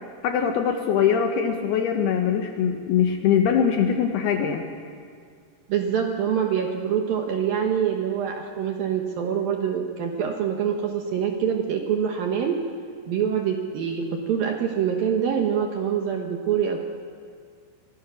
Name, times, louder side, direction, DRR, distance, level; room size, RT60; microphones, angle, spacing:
voice 1, 0.2-4.7, left 8 dB, 70° left, 4 dB, 2.6 m, -22 dB
voice 2, 5.7-12.6 13.1-16.8, right 8 dB, 70° right, 3 dB, 2.3 m, -25 dB
25.0 x 18.5 x 6.3 m, 2.2 s
omnidirectional pair, 5.6 m